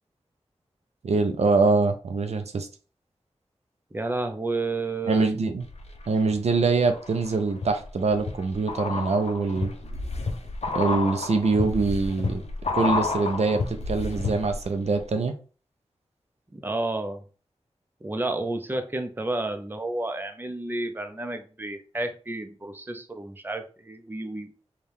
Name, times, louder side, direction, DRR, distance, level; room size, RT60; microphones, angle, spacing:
voice 1, 1.0-2.7 5.1-5.6 6.1-9.7 10.7-12.4 12.7-15.3, right 4 dB, 75° right, 6 dB, 0.5 m, -24 dB
voice 2, 3.9-5.4 16.5-17.2 18.0-24.5, right 2 dB, 20° right, 6 dB, 0.6 m, -31 dB
sound 1, 5.6-6.4 6.8-14.7 15.0-15.1, left 3 dB, 75° left, 0.6 m, -31 dB
4.5 x 2.3 x 3.5 m, 0.37 s
wide cardioid pair, 55°, 11 cm